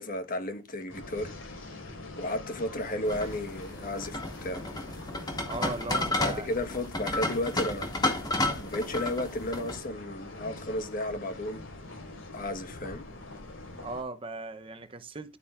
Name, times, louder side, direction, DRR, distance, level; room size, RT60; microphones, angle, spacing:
voice 1, 0.0-1.3 2.2-4.6 6.2-7.9 8.6-11.6 12.3-13.1, left 1 dB, 40° left, 1.3 m, -33 dB
sound 1, 0.9-14.0, left 2 dB, 80° left, 4.2 m, -44 dB
sound 2, 3.1-9.8, left 2 dB, 20° left, 2.0 m, -32 dB
voice 2, 5.4-6.5 13.8-15.4, right 2 dB, 25° right, 0.7 m, -38 dB
12.0 x 8.6 x 2.4 m
head